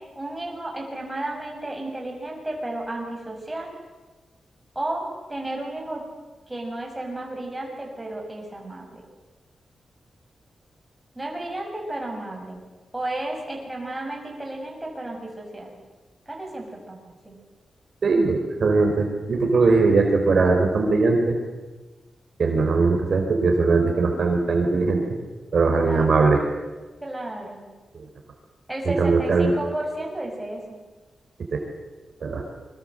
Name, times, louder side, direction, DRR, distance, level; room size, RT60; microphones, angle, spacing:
voice 1, 0.2-3.7 4.8-6.0 6.5-9.0 11.2-12.6 12.9-15.7 16.3-17.0 17.3-17.4 25.8-26.2 27.0-27.7 28.7-30.8, right 1 dB, 10° right, 0 dB, 7.1 m, -33 dB
voice 2, 18.0-21.4 22.4-25.0 25.5-26.4 27.9-28.0 28.8-29.5 31.5-31.6 32.2-32.4, right 3 dB, 55° right, 3 dB, 4.1 m, -20 dB
28.0 x 23.0 x 7.8 m, 1.2 s
wide cardioid pair, 140°, 0 cm